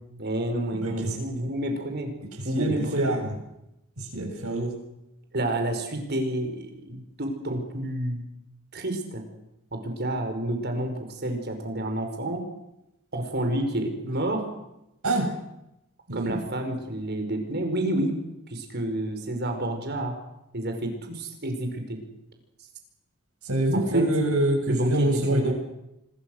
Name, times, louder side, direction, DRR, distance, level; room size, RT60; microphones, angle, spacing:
voice 1, 0.2-2.1 2.4-3.1 5.3-8.2 8.7-9.2 9.7-12.4 13.1-14.5 16.1-18.2 18.5-20.1 20.5-22.0 23.7-24.1 24.7-25.5, right 1 dB, 50° right, 5 dB, 5.2 m, -29 dB
voice 2, 2.5-3.3 4.1-4.7 15.0-15.3 16.1-16.4 23.5-25.5, right 1 dB, 80° right, 3 dB, 7.3 m, -25 dB
26.0 x 22.0 x 6.5 m, 0.89 s
head